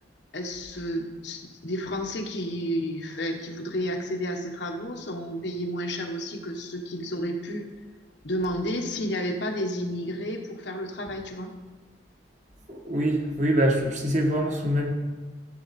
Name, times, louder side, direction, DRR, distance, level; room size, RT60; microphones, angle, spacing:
voice 1, 0.3-7.6 8.2-11.5, equal, 65° left, 3 dB, 1.2 m, -31 dB
voice 2, 12.7-14.9, equal, 40° right, 1 dB, 1.4 m, -24 dB
13.5 x 7.8 x 4.2 m, 1.3 s
head